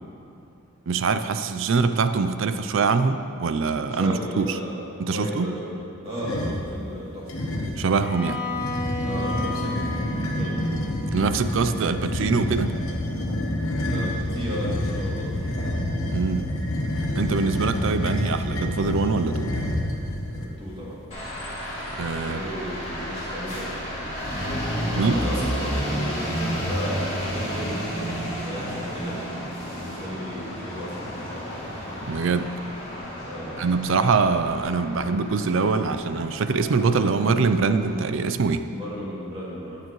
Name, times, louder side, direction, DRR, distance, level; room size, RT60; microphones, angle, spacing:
voice 1, 0.9-4.6 5.0-5.5 7.8-8.4 11.1-12.8 16.1-16.5 17.1-19.5 22.0-22.4 24.9-25.2 32.0-32.5 33.6-38.7, right 4 dB, 60° right, 10 dB, 0.4 m, -23 dB
voice 2, 3.8-7.3 9.0-10.8 13.7-15.4 20.3-21.0 22.1-24.1 24.9-29.1 29.7-31.6 33.2-33.7 38.7-39.8, equal, 25° right, -7 dB, 2.6 m, -34 dB
sound 1, 6.2-6.7 7.3-7.9 8.5-20.5, left 1 dB, 75° left, 1.1 m, -28 dB
Bowed string instrument, 8.0-12.0, left 2 dB, 5° right, 1.2 m, -33 dB
sound 2, 21.1-38.0, equal, 30° left, 2.3 m, -32 dB
18.0 x 6.8 x 3.1 m, 2.6 s
head